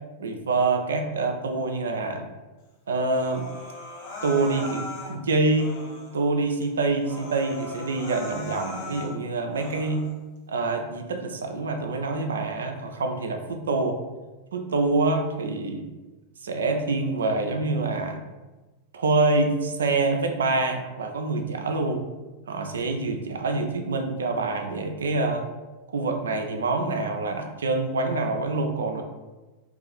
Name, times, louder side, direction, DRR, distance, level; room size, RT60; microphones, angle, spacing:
voice 1, 0.2-2.3 2.9-3.5 4.2-5.7 6.1-10.0 10.5-14.0 14.5-15.9 16.4-18.2 18.9-22.0 22.5-25.5 25.9-29.0, right 3 dB, 65° right, 5 dB, 0.4 m, -26 dB
Human voice, 3.1-5.1 5.5-6.2 6.6-6.7 7.0-9.1 9.5-10.1, left 2 dB, 50° left, 0.7 m, -38 dB
2.7 x 2.4 x 4.1 m, 1.2 s
figure-of-eight pair, 90°, 0 cm